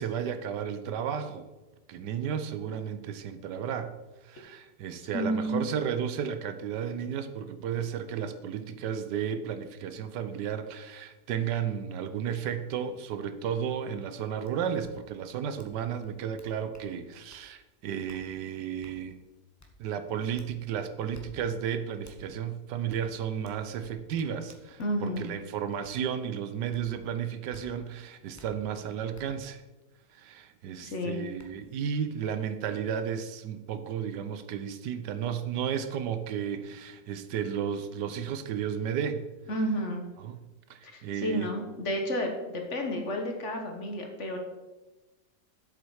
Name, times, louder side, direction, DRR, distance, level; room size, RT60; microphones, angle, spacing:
voice 1, 0.0-1.5 1.9-3.9 4.2-19.2 19.8-29.6 30.1-39.3 40.2-41.5, right 8 dB, 80° right, 10 dB, 1.3 m, -33 dB
voice 2, 5.1-5.6 24.8-25.3 30.8-31.2 39.5-40.0 40.8-44.4, equal, 45° left, 3 dB, 1.3 m, -31 dB
sound 1, 14.4-14.5 14.8-14.9 15.6-15.7 16.0-16.9 17.3-17.4 18.1-18.2 18.8-19.0 19.6-19.7 20.4-20.5 21.1-21.3 22.0-22.2 22.9-23.0 23.4-25.3 25.8-26.0 26.7-26.8 27.5-27.6 28.3-28.5 29.1-29.3 30.8-30.9 31.4-31.5, left 2 dB, 15° left, 0.8 m, -54 dB
7.9 x 7.4 x 4.7 m, 1.1 s
omnidirectional pair, 1.8 m